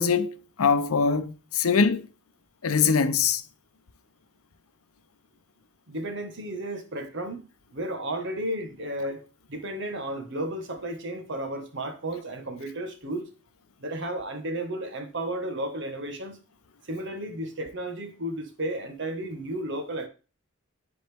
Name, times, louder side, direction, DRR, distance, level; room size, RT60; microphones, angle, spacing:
voice 1, 0.0-2.1 2.6-3.4, left 5 dB, 80° left, 0.7 m, -23 dB
voice 2, 5.9-7.4 7.7-9.2 9.5-13.3 13.8-16.4 16.8-20.1, right 1 dB, 55° right, 1.4 m, -33 dB
11.0 x 4.2 x 3.4 m
head